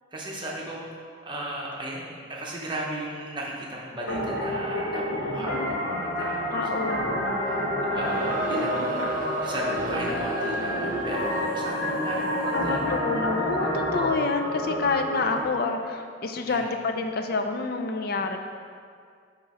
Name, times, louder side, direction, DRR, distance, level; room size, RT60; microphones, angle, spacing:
voice 1, 0.1-6.6 7.0-9.0 9.4-12.8 16.5-16.6, right 1 dB, 25° right, -3 dB, 0.9 m, -36 dB
sound 1, 4.1-15.4, equal, 75° left, 1.4 m, -28 dB
voice 2, 6.5-7.1 8.5-9.1 12.4-18.4, left 3 dB, 50° left, 5 dB, 0.4 m, -28 dB
Crowd, 7.9-12.9, right 3 dB, 45° right, 0.4 m, -35 dB
8.5 x 3.0 x 4.9 m, 2.2 s
head